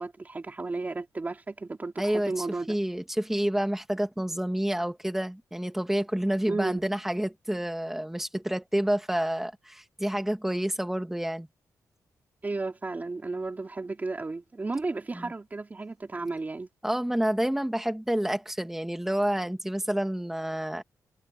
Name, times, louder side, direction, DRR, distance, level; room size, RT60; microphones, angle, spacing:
voice 1, 0.0-2.8 6.5-6.8 12.4-16.7, right 3 dB, 25° right, 3.5 m, -33 dB
voice 2, 2.0-11.5 15.1-15.3 16.8-20.8, right 1 dB, 5° right, 2.4 m, -29 dB
wide cardioid pair, 120°, 7 cm